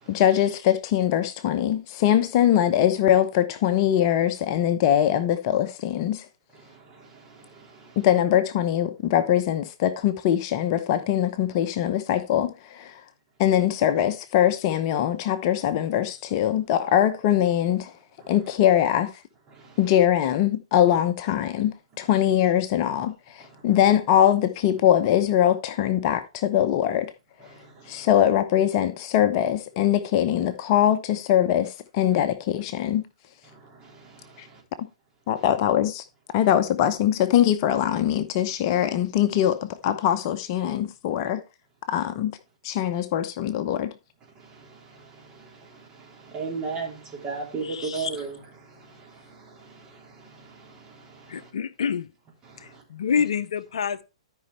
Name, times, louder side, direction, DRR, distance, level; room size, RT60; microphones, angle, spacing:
voice 1, 0.1-6.3 8.0-13.0 13.4-17.9 18.3-19.1 19.8-27.1 27.9-33.0 34.4-34.5 35.3-36.0 36.3-41.4 41.9-42.4 42.6-43.9, left 11 dB, 40° left, 0.8 m, -22 dB
voice 2, 6.5-8.1 18.2-18.4 19.5-20.0 22.0-22.2 23.5-23.8 27.4-28.1 33.5-34.6 35.4-35.5 36.4-36.5 41.9-42.1 44.4-51.5 52.4-52.8, right 4 dB, 25° right, 3.4 m, -39 dB
voice 3, 47.6-48.1 51.3-52.1 52.6-54.0, left 7 dB, 70° left, 0.6 m, -27 dB
13.0 x 5.4 x 3.3 m
hypercardioid pair, 125°, 3 cm